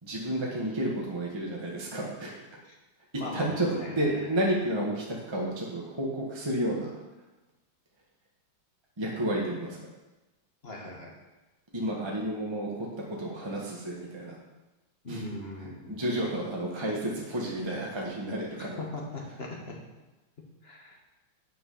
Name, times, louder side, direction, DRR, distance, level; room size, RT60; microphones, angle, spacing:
voice 1, 0.0-2.3 3.3-6.9 9.0-9.8 11.7-14.4 15.1-15.2 15.9-18.8, right 1 dB, 15° right, -3 dB, 1.4 m, -31 dB
voice 2, 3.2-4.3 10.6-11.1 15.0-16.0 18.8-19.8 20.4-21.0, left 2 dB, 30° left, -1 dB, 1.6 m, -40 dB
9.2 x 6.6 x 5.6 m, 1.1 s
omnidirectional pair, 2.3 m